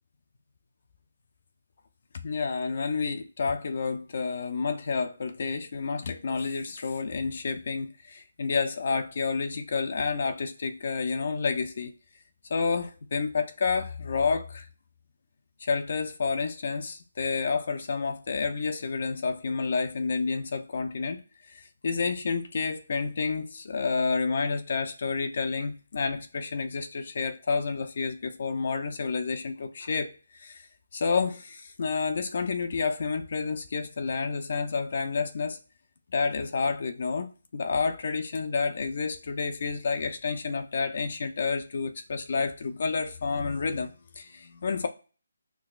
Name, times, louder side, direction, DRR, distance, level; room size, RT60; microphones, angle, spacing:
voice 1, 2.2-11.9 12.5-14.7 15.6-21.2 21.5-30.7 30.9-35.6 36.1-44.9, left 4 dB, 55° left, 0.4 m, -29 dB
5.9 x 2.0 x 2.4 m
figure-of-eight pair, 155°, 0 cm